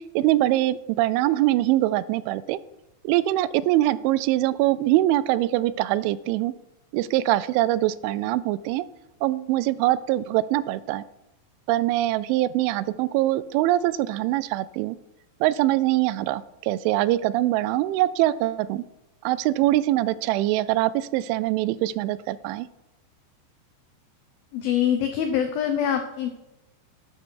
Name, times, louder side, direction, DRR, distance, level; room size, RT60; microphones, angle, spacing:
voice 1, 0.0-2.6 3.0-6.5 6.9-8.9 9.2-11.0 11.7-15.0 15.4-18.8 19.2-22.7, right 15 dB, 85° right, 17 dB, 3.0 m, -23 dB
voice 2, 24.5-26.3, left 9 dB, 85° left, 6 dB, 2.1 m, -24 dB
12.5 x 9.5 x 4.6 m, 0.94 s
omnidirectional pair, 5.4 m